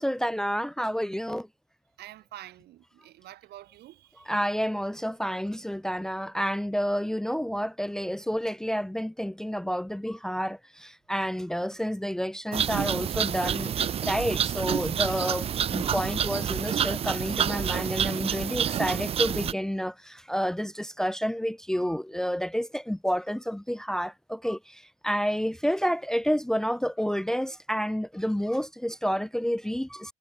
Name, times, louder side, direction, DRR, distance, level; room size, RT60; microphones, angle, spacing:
voice 1, 0.0-1.5 4.3-13.7 14.0-30.1, equal, 5° left, 0.9 m, -29 dB
voice 2, 2.0-4.4 15.1-15.3, right 14 dB, 75° right, 5.5 m, -47 dB
sound 1, 12.5-19.5, right 9 dB, 35° right, 0.4 m, -28 dB
cardioid pair, 110°, 17 cm